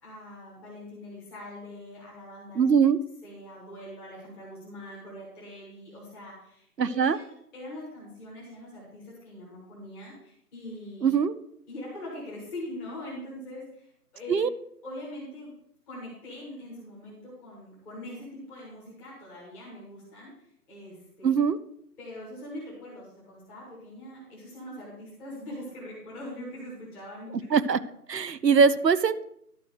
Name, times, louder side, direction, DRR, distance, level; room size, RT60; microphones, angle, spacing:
voice 1, 0.0-2.7 3.2-7.2 7.5-11.1 11.7-14.4 14.8-15.5 15.9-21.4 22.0-27.5, left 1 dB, 5° left, -7 dB, 1.1 m, -42 dB
voice 2, 2.6-3.0 6.8-7.2 11.0-11.3 14.3-14.5 21.2-21.6 27.5-27.8 28.1-29.2, right 6 dB, 90° right, 14 dB, 0.9 m, -22 dB
11.5 x 4.6 x 6.3 m, 0.72 s
figure-of-eight pair, 160°, 48 cm